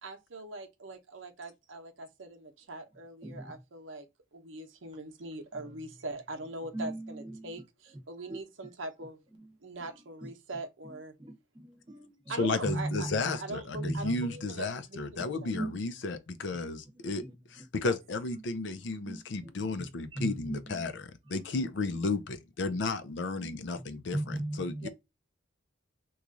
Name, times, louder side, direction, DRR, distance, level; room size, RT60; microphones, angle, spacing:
voice 1, 0.0-4.1 4.3-9.2 9.6-11.1 12.3-13.1 13.3-15.5 17.8-18.0 24.8-24.9, right 2 dB, 85° right, 0.8 m, -42 dB
voice 2, 6.7-7.5 11.2-12.1 12.6-13.4 13.8-14.3 15.5-15.7 17.0-17.3 19.0-19.5 20.1-20.6 23.4-23.6 24.1-24.9, right 1 dB, 25° right, 0.8 m, -37 dB
voice 3, 12.4-17.2 17.5-24.9, left 3 dB, 65° left, 0.5 m, -33 dB
3.0 x 2.4 x 3.6 m
head